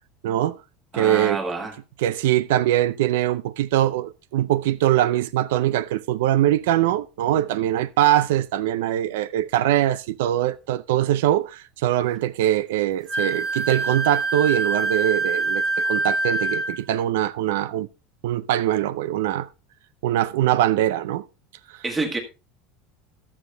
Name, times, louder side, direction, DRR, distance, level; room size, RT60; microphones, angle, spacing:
voice 1, 0.2-0.6 0.9-1.4 2.0-17.9 18.2-19.5 20.0-21.2 21.7-21.8, right 13 dB, 85° right, 0.5 m, -22 dB
voice 2, 0.9-1.8 21.8-22.2, right 3 dB, 10° right, 1.6 m, -27 dB
Wind instrument woodwind instrument, 13.1-16.8, right 3 dB, 25° right, 1.4 m, -25 dB
13.0 x 7.2 x 3.4 m
supercardioid pair, 170°, 0 cm